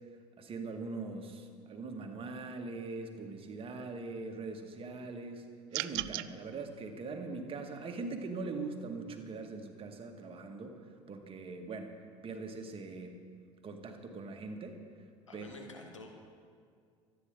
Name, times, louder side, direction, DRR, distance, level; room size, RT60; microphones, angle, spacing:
voice 1, 0.4-5.5 5.7-10.8 11.1-11.9 12.2-13.2 13.6-14.8 15.3-15.5, right 3 dB, 35° right, 4 dB, 1.9 m, -41 dB
sound 1, 5.7-6.3, right 19 dB, 60° right, 0.4 m, -35 dB
voice 2, 15.3-16.2, left 2 dB, 90° left, 3 dB, 1.6 m, -49 dB
25.0 x 9.5 x 3.9 m, 2.1 s
figure-of-eight pair, 65°, 16 cm